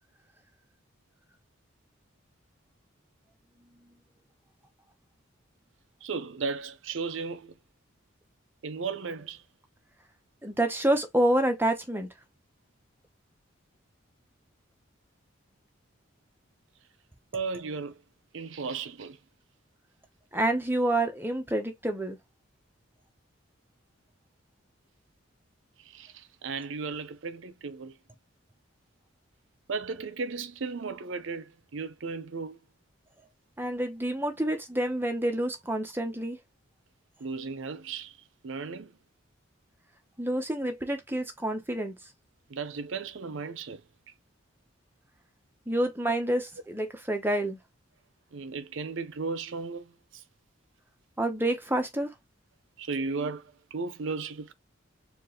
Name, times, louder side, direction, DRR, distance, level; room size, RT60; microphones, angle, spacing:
voice 1, 6.0-7.5 8.6-9.4 17.3-18.0 18.3-19.2 25.8-28.0 29.7-32.6 37.2-38.2 38.4-38.9 42.5-43.8 46.0-46.1 48.3-50.2 52.8-54.5, right 4 dB, 70° right, 0.6 m, -35 dB
voice 2, 10.4-12.1 20.3-22.2 33.6-36.4 40.2-42.0 45.7-47.6 51.2-52.1, right 1 dB, 10° right, 0.8 m, -28 dB
4.5 x 2.5 x 3.0 m
head